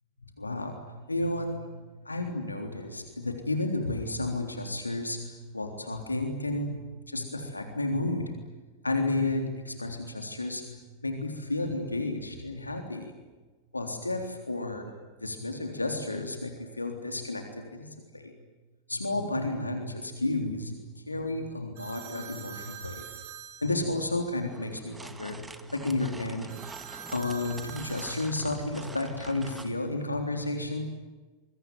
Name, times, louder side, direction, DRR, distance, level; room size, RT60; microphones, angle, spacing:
voice 1, 0.4-6.8 7.1-8.3 8.8-13.1 13.7-14.9 15.2-18.3 18.9-23.0 23.6-26.7 27.1-30.8, left 2 dB, 80° left, 4 dB, 3.5 m, -32 dB
sound 1, 21.8-24.3 26.5-28.3, right 8 dB, 55° right, 4.3 m, -44 dB
sound 2, 24.5-29.7, right 3 dB, 10° right, 2.1 m, -46 dB
27.0 x 23.0 x 9.5 m, 1.3 s
figure-of-eight pair, 90°, 0 cm